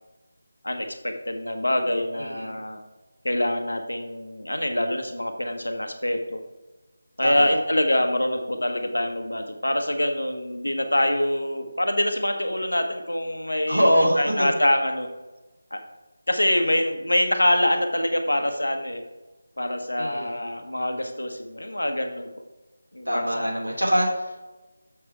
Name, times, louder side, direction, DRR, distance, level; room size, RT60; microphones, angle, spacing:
voice 1, 0.6-2.8 3.2-6.4 7.2-15.1 15.7-15.8 16.3-19.0 19.6-22.3 22.9-23.5, left 1 dB, 75° left, 5 dB, 1.3 m, -25 dB
voice 2, 2.1-2.6 7.2-7.5 13.7-14.5 20.0-20.3 23.0-24.4, equal, 80° right, -2 dB, 3.0 m, -23 dB
7.0 x 6.1 x 4.7 m, 1.1 s
figure-of-eight pair, 160°, 0 cm